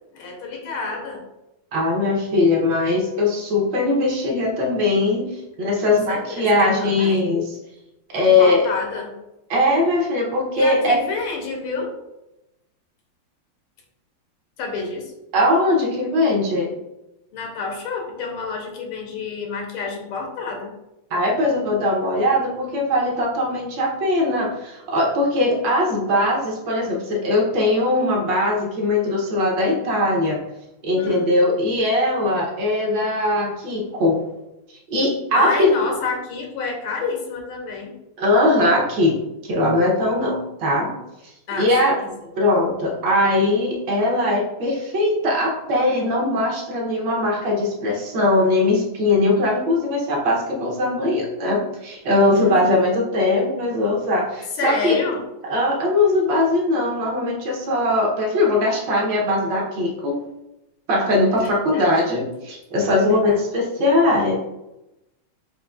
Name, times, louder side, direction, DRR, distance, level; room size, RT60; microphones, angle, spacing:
voice 1, 0.1-1.2 5.9-7.3 8.2-9.1 10.5-11.9 14.6-15.1 17.3-20.7 31.0-31.3 35.3-37.9 41.5-41.7 52.4-52.9 54.6-55.2 61.4-62.0 63.1-63.4, left 4 dB, 90° left, 1 dB, 1.8 m, -29 dB
voice 2, 1.7-7.6 8.1-8.7 9.5-11.0 15.3-16.7 21.1-30.4 30.8-34.2 34.9-35.7 38.2-40.9 41.6-42.0 42.4-55.0 55.4-60.2 60.9-64.4, left 2 dB, 65° right, -1 dB, 1.5 m, -20 dB
6.6 x 2.6 x 2.4 m, 0.91 s
omnidirectional pair, 2.3 m